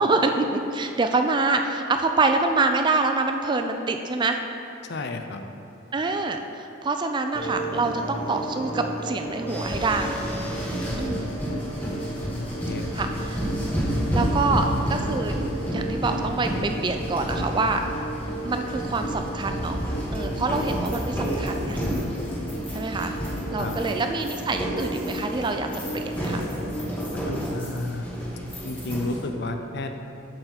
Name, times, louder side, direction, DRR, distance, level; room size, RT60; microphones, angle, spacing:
voice 1, 0.0-4.4 5.9-10.2 11.0-11.3 12.9-13.4 14.1-15.4 15.7-17.8 18.4-19.8 20.1-21.8 22.7-23.1 23.5-25.7 25.9-26.4, right 3 dB, 20° right, 6 dB, 0.3 m, -26 dB
voice 2, 4.9-5.4 10.9-11.4 12.3-13.1 14.5-14.6 23.6-23.8 27.1-28.1 28.6-30.0, left 2 dB, 55° left, 6 dB, 0.5 m, -32 dB
sound 1, 7.3-27.1, right 1 dB, 30° left, 0.8 m, -35 dB
sound 2, 9.5-29.3, equal, 10° left, 1.6 m, -30 dB
7.7 x 6.7 x 4.3 m, 2.8 s
head